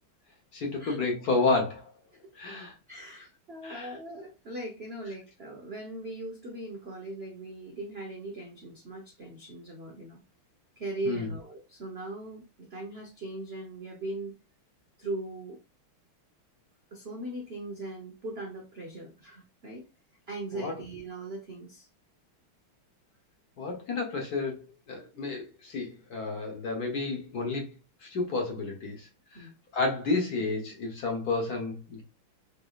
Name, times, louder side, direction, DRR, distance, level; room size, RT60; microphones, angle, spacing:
voice 1, 0.5-1.9 2.3-2.7 3.6-3.9 11.1-11.3 20.5-20.7 23.6-27.7 28.0-29.1 29.3-29.5 29.7-32.0, left 3 dB, 50° left, 1.5 m, -31 dB
voice 2, 2.9-10.2 10.8-14.3 15.0-15.6 16.9-19.9 20.3-21.9 29.3-29.5, right 2 dB, 85° right, 0.5 m, -39 dB
5.1 x 3.0 x 2.3 m
omnidirectional pair, 2.4 m